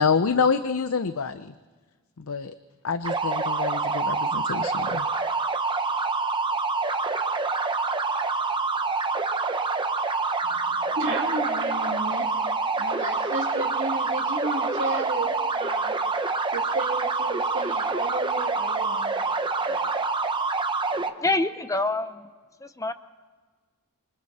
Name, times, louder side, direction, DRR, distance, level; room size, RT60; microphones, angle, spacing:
voice 1, 0.0-1.5 2.2-2.5 2.8-5.1, left 5 dB, 70° left, 12 dB, 0.6 m, -26 dB
sound 1, 3.0-21.1, right 3 dB, 20° right, 1.0 m, -26 dB
voice 2, 10.4-12.4 12.8-16.0 16.5-19.9, right 2 dB, 60° right, -5 dB, 2.9 m, -33 dB
voice 3, 21.2-22.3 22.6-22.9, left 2 dB, 15° left, 11 dB, 0.8 m, -26 dB
28.0 x 25.0 x 4.2 m, 1.4 s
head